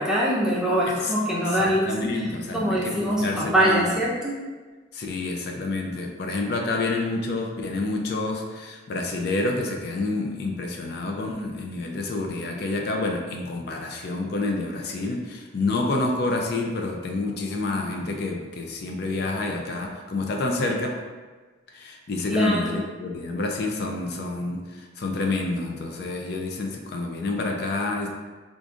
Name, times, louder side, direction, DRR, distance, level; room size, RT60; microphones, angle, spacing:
voice 1, 0.0-1.9 2.5-4.3 22.3-22.8, equal, 5° right, -6 dB, 0.5 m, -23 dB
voice 2, 1.5-4.0 4.9-21.0 21.7-28.1, left 2 dB, 55° left, 2 dB, 0.4 m, -28 dB
4.9 x 2.5 x 2.4 m, 1.4 s
head